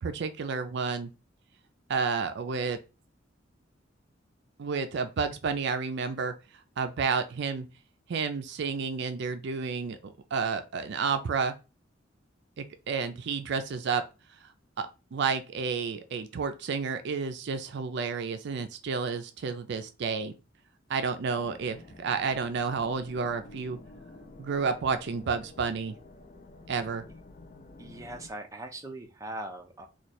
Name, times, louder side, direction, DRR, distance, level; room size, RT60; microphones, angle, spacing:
voice 1, 0.0-1.1 1.9-2.8 4.6-6.3 6.8-7.7 8.1-11.5 12.6-14.0 14.4-14.5 14.8-20.3 20.9-23.8 24.4-25.9 26.7-27.0, right 5 dB, 65° right, 0.4 m, -31 dB
sound 1, 21.4-28.3, left 2 dB, 40° left, 0.5 m, -50 dB
voice 2, 27.8-29.9, right 1 dB, 15° right, 0.6 m, -40 dB
3.1 x 2.3 x 4.2 m
head